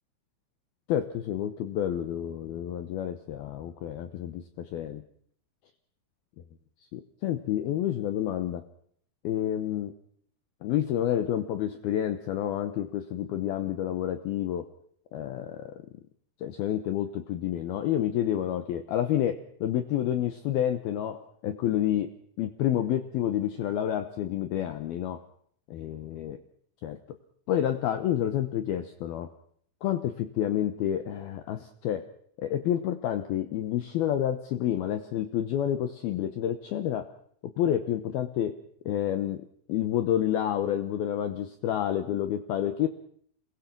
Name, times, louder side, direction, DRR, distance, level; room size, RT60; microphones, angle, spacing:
voice 1, 0.9-5.0 6.9-8.7 9.2-10.0 10.6-14.7 15.1-15.8 16.4-25.2 25.7-26.4 26.8-27.0 27.5-29.3 29.8-32.1 32.4-37.1 37.4-38.6 38.9-42.9, left 11 dB, 85° left, 9 dB, 2.1 m, -29 dB
28.0 x 21.5 x 6.0 m, 0.63 s
omnidirectional pair, 5.9 m